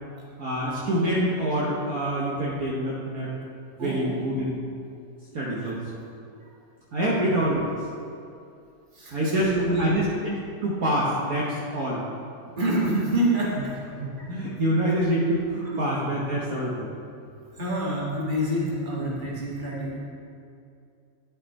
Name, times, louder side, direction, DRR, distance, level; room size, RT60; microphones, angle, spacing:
voice 1, 0.4-3.3 3.8-4.6 5.3-6.0 6.9-7.6 9.1-12.0 13.9-16.9 19.0-19.2, right 1 dB, 60° right, -6 dB, 1.5 m, -26 dB
voice 2, 3.8-4.1 5.6-5.7 6.9-7.3 8.9-10.0 12.6-13.7 15.0-15.1 15.7-15.8 17.6-20.0, right 1 dB, 30° right, -6 dB, 1.8 m, -27 dB
10.5 x 6.0 x 4.1 m, 2.5 s
omnidirectional pair, 1.9 m